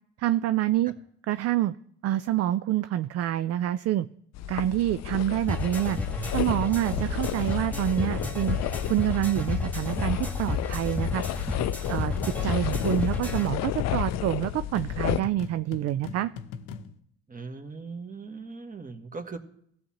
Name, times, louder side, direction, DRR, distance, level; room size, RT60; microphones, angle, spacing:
voice 1, 0.2-0.9 1.3-1.7 2.0-4.1 4.5-6.0 6.3-8.6 8.9-11.2 11.9-16.3, right 13 dB, 50° right, 13 dB, 0.4 m, -27 dB
sound 1, 4.3-15.2, left 13 dB, 50° left, 0.5 m, -32 dB
sound 2, 5.5-13.5, left 3 dB, 5° left, 1.6 m, -31 dB
sound 3, 11.8-17.0, left 6 dB, 70° left, 0.9 m, -40 dB
voice 2, 17.3-19.4, right 4 dB, 25° right, 6 dB, 1.6 m, -39 dB
17.5 x 7.3 x 3.0 m, 0.68 s
hypercardioid pair, 55°, 33 cm